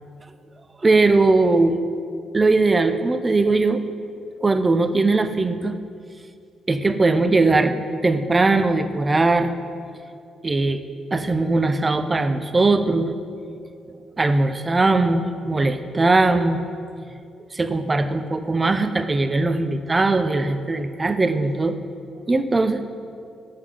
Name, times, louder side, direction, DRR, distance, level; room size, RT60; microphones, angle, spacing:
voice 1, 0.8-1.8 2.3-3.8 4.4-5.8 6.7-9.5 10.4-10.8 11.1-13.1 14.2-16.6 17.5-21.8 22.3-22.8, right 3 dB, 25° right, 10 dB, 0.5 m, -20 dB
7.8 x 5.6 x 4.9 m, 2.4 s
cardioid pair, 90°, 0 cm